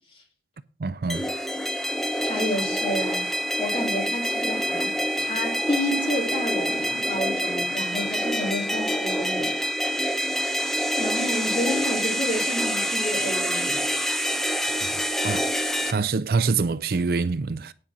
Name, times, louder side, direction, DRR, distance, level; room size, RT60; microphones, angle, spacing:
voice 1, 0.8-1.3 14.6-17.7, right 4 dB, 55° right, 0.4 m, -26 dB
sound 1, 1.1-15.9, equal, ahead, 0.9 m, -26 dB
voice 2, 2.2-3.3 3.6-9.5 11.0-14.0, left 1 dB, 30° left, 3.4 m, -30 dB
9.8 x 5.3 x 7.3 m
head